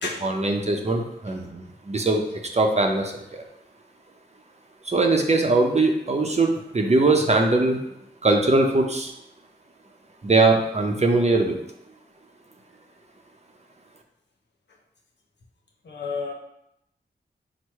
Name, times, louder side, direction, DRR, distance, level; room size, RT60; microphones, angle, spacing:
voice 1, 0.0-2.2 2.5-3.4 4.8-7.8 8.2-9.1 10.2-11.6, right 2 dB, 35° right, 2 dB, 0.7 m, -21 dB
voice 2, 15.9-16.3, left 4 dB, 75° left, 0 dB, 0.8 m, -30 dB
4.5 x 2.2 x 4.5 m, 0.81 s
cardioid pair, 45°, 18 cm